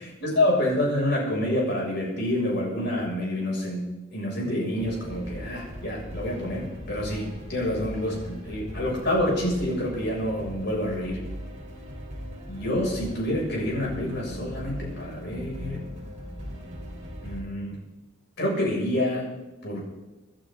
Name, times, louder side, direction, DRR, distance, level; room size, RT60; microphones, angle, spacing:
voice 1, 0.2-11.2 12.5-15.8 17.2-17.8 18.4-19.3 19.6-19.9, left 1 dB, 60° left, -3 dB, 6.8 m, -27 dB
sound 1, 4.7-17.4, equal, 35° right, 4.1 m, -39 dB
26.5 x 11.5 x 3.9 m, 1.0 s
head